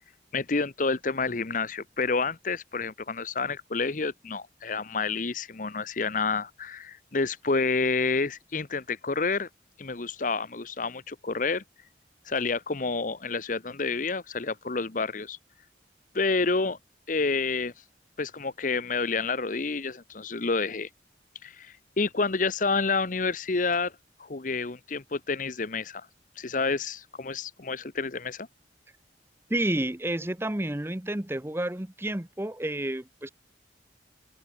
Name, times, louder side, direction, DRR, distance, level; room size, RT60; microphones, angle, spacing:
voice 1, 0.3-9.5 9.8-11.6 12.3-15.4 16.1-16.8 17.1-17.7 18.2-20.9 21.4-23.9 24.2-26.1 26.4-28.5, left 4 dB, 45° left, 0.9 m, -29 dB
voice 2, 29.5-33.3, right 1 dB, 15° right, 0.9 m, -30 dB
open air
head